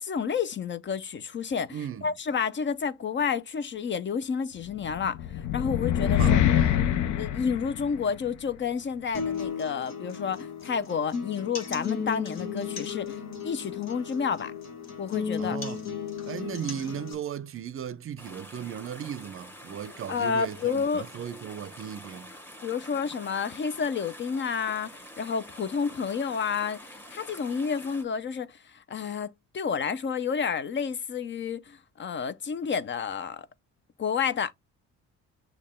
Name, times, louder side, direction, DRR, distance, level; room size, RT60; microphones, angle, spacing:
voice 1, 0.0-6.4 7.2-14.5 15.0-15.6 16.4-16.6 20.1-21.1 22.6-33.5 34.0-34.5, left 6 dB, 40° left, 0.5 m, -30 dB
voice 2, 1.7-2.1 6.1-6.9 15.4-15.8 16.2-22.3, right 9 dB, 45° right, 0.5 m, -37 dB
sound 1, 4.8-8.3, left 10 dB, 80° left, 0.6 m, -25 dB
sound 2, 9.1-17.1, left 6 dB, 60° left, 1.3 m, -35 dB
sound 3, 18.2-28.0, equal, 5° left, 1.2 m, -47 dB
6.5 x 2.3 x 3.5 m
cardioid pair, 85°, 30 cm